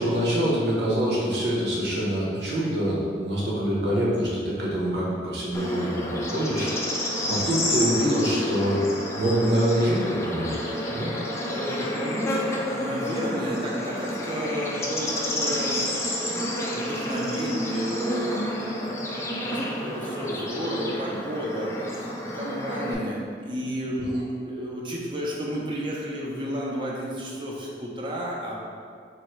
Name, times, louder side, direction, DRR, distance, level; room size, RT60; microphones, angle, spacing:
voice 1, 0.0-6.7 7.3-8.8 9.2-10.5 10.9-11.1 24.0-24.2, equal, 75° right, -5 dB, 0.9 m, -25 dB
Bird / Insect, 5.5-22.9, left 1 dB, 15° left, 0.3 m, -30 dB
voice 2, 11.5-16.0 16.4-28.6, equal, 30° right, -4 dB, 0.5 m, -32 dB
3.1 x 2.7 x 4.5 m, 2.1 s
head